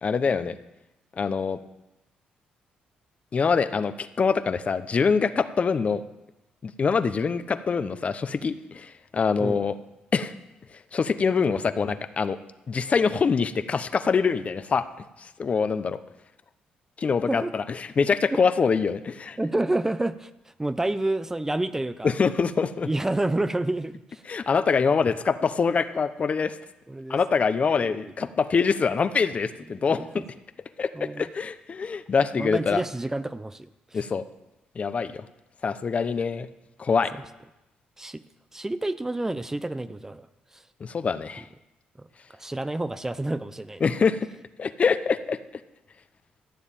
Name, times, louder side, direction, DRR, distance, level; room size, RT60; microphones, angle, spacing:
voice 1, 0.0-0.6 1.2-1.6 3.3-6.0 6.6-9.8 10.1-10.3 10.9-12.4 12.7-14.8 15.2-16.0 17.0-19.4 22.0-22.9 24.3-26.6 27.1-30.2 30.8-32.8 33.9-34.2 34.8-35.2 35.6-36.5 36.8-37.1 40.8-41.5 43.8-44.3 44.6-45.4, left 5 dB, 40° left, 12 dB, 0.9 m, -24 dB
voice 2, 19.4-22.1 22.9-24.2 26.9-27.2 27.8-27.9 29.9-30.2 30.9-31.3 32.4-33.7 38.0-38.2 38.5-40.3 40.5-40.6 42.0-42.1 42.3-43.9, right 2 dB, 15° right, 13 dB, 0.6 m, -29 dB
14.0 x 7.2 x 8.8 m, 0.94 s
cardioid pair, 75°, 3 cm